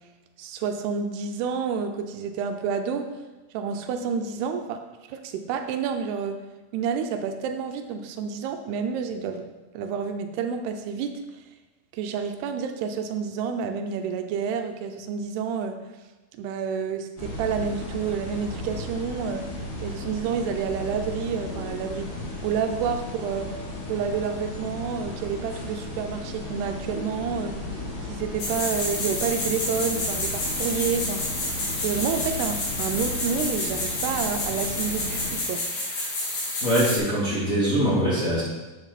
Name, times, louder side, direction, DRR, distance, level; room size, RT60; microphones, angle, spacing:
voice 1, 0.4-3.1 3.5-4.8 5.1-6.4 6.7-9.5 9.7-11.2 11.9-15.8 16.3-19.5 19.8-22.1 22.4-23.5 23.9-27.6 28.1-31.5 31.8-35.6, right 6 dB, 90° right, 6 dB, 2.8 m, -29 dB
sound 1, 17.2-35.3, left 1 dB, 80° left, 5.4 m, -35 dB
sound 2, 28.4-37.0, left 2 dB, 65° left, 4.4 m, -29 dB
voice 2, 36.6-38.4, equal, 20° left, -8 dB, 3.0 m, -23 dB
11.0 x 7.7 x 4.1 m, 1.2 s
omnidirectional pair, 4.5 m